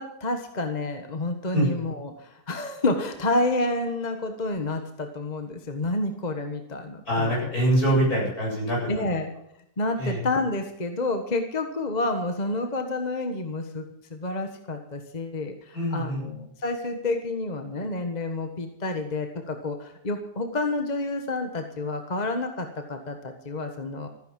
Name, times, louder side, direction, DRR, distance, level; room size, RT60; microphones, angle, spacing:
voice 1, 0.0-7.3 8.9-9.3 9.8-24.1, left 2 dB, 25° left, 5 dB, 1.4 m, -29 dB
voice 2, 7.1-9.1 10.0-10.2 15.7-16.2, right 1 dB, 60° left, -4 dB, 8.7 m, -24 dB
14.5 x 10.0 x 7.4 m, 0.77 s
omnidirectional pair, 1.8 m